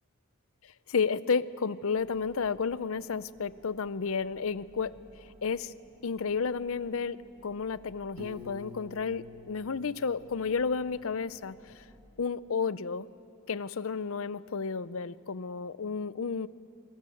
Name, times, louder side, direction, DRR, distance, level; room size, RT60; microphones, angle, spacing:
voice 1, 0.9-5.7 6.0-11.8 12.2-13.1 13.5-16.5, left 5 dB, 65° left, 16 dB, 0.6 m, -32 dB
sound 1, 2.0-12.1, equal, 15° left, 3.0 m, -59 dB
Piano, 8.2-11.1, left 3 dB, 75° right, 2.9 m, -49 dB
26.0 x 25.0 x 7.8 m, 2.7 s
head